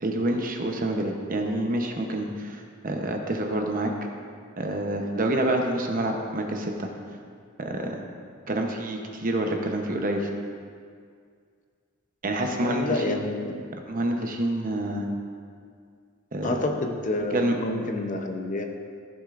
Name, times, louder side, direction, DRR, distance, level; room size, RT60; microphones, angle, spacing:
voice 1, 0.0-3.9 4.6-6.9 7.6-8.0 8.5-10.3 12.2-13.2 13.9-15.1 16.3-16.6 17.3-17.6, right 1 dB, 40° right, 3 dB, 0.8 m, -27 dB
voice 2, 12.6-13.8 16.4-18.6, left 2 dB, 40° left, 3 dB, 0.7 m, -29 dB
14.5 x 7.3 x 2.5 m, 2.1 s
head